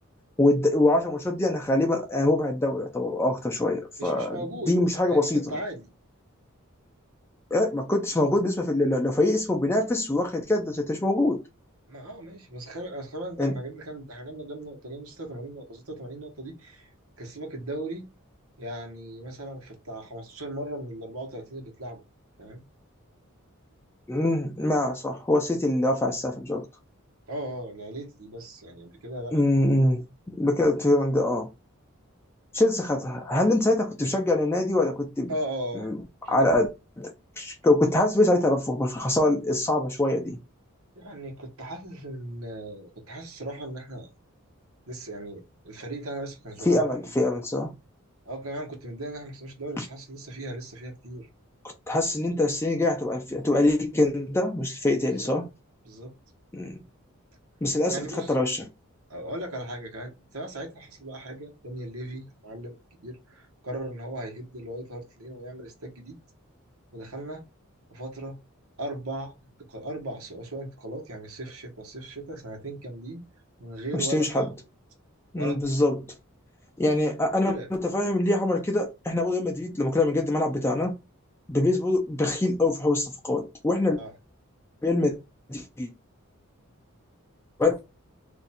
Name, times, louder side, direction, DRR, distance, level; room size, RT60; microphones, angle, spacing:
voice 1, 0.4-4.4 4.7-5.6 7.5-11.4 13.4-13.6 24.1-26.7 29.3-30.0 30.3-31.5 32.5-35.3 35.7-36.0 36.3-36.7 37.0-40.4 46.7-47.7 49.8-49.9 51.9-55.5 56.5-56.8 57.6-58.6 73.9-74.5 75.3-76.0 76.8-81.0 81.5-84.0 84.8-85.1 85.5-85.9 87.6-87.8, left 2 dB, 10° left, 0.4 m, -24 dB
voice 2, 4.0-4.8 5.1-5.9 11.9-16.9 17.2-18.1 18.6-22.0 22.4-22.6 27.3-29.4 35.3-35.9 36.2-36.6 41.0-44.1 44.9-47.1 48.2-51.3 55.1-55.2 55.8-56.1 57.8-58.3 59.1-66.2 66.9-67.4 67.9-68.4 68.8-69.3 69.7-73.2 73.6-74.5 75.4-75.6 77.5-77.7 84.0-84.1, right 1 dB, 85° right, 1.1 m, -37 dB
2.6 x 2.3 x 4.1 m
head